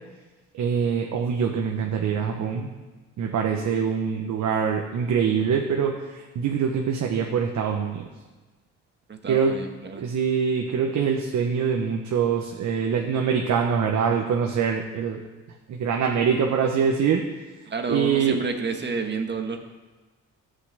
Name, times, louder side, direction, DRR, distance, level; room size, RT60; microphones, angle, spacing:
voice 1, 0.6-2.7 3.2-8.1 9.3-9.6 10.0-15.2 15.7-17.2 17.9-18.4, right 7 dB, 70° right, 2 dB, 1.1 m, -24 dB
voice 2, 9.1-10.0 17.7-19.6, right 4 dB, 35° right, 4 dB, 1.6 m, -30 dB
12.0 x 5.8 x 8.1 m, 1.2 s
cardioid pair, 90°, 30 cm